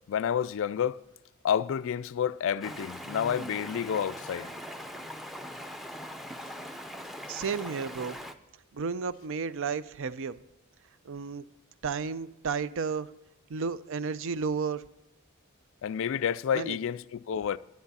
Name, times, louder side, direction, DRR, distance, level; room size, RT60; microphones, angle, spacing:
voice 1, 0.1-1.0 1.4-4.5 15.8-17.6, left 8 dB, 60° left, 0.3 m, -29 dB
Stream, 2.6-8.3, equal, ahead, 0.5 m, -41 dB
voice 2, 7.3-8.2 8.7-10.4 11.1-11.4 11.8-13.1 13.5-14.8 16.5-16.8, right 5 dB, 60° right, 0.5 m, -32 dB
10.5 x 10.5 x 4.1 m
head